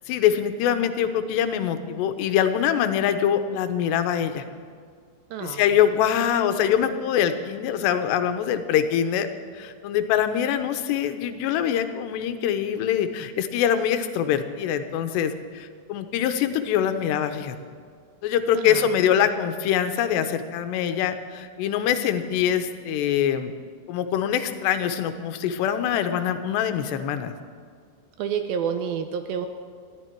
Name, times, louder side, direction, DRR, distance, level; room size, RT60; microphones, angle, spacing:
voice 1, 0.1-4.4 5.4-9.3 9.6-17.6 18.2-23.5 23.9-27.4, left 9 dB, 90° left, 8 dB, 3.1 m, -24 dB
voice 2, 5.3-5.7 18.5-18.9 28.2-29.5, right 7 dB, 80° right, 7 dB, 2.3 m, -29 dB
20.5 x 14.0 x 4.6 m, 2.1 s
omnidirectional pair, 4.8 m